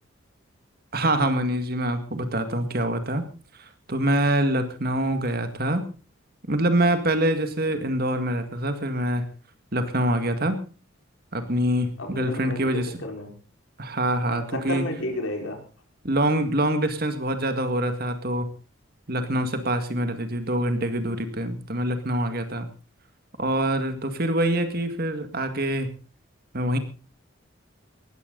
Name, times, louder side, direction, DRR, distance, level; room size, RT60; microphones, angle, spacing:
voice 1, 0.9-3.2 3.6-5.9 6.5-9.3 9.7-10.6 11.3-12.9 13.8-14.8 16.0-18.5 19.1-22.7 23.4-25.9 26.5-26.8, right 1 dB, 45° right, 8 dB, 2.0 m, -25 dB
voice 2, 12.0-13.3 14.3-15.6, left 1 dB, 75° left, 3 dB, 4.9 m, -32 dB
18.5 x 14.5 x 4.0 m, 0.36 s
head